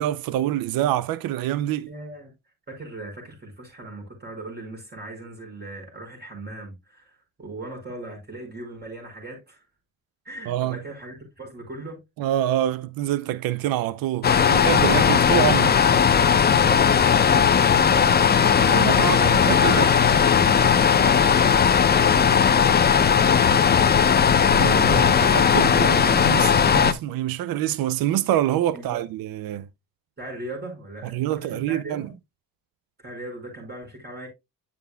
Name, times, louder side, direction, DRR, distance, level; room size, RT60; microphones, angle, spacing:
voice 1, 0.0-1.9 10.5-10.8 12.2-15.7 18.6-20.0 24.5-29.7 31.1-32.1, right 12 dB, 85° right, 0.5 m, -26 dB
voice 2, 1.9-2.3 2.7-9.6 10.2-12.0 15.2-15.4 15.9-18.5 20.6-23.6 28.7-29.0 30.2-32.2 33.0-34.3, right 2 dB, 30° right, 4.9 m, -39 dB
sound 1, 14.2-26.9, left 7 dB, 30° left, 0.7 m, -18 dB
9.5 x 6.8 x 2.2 m
cardioid pair, 115°, 34 cm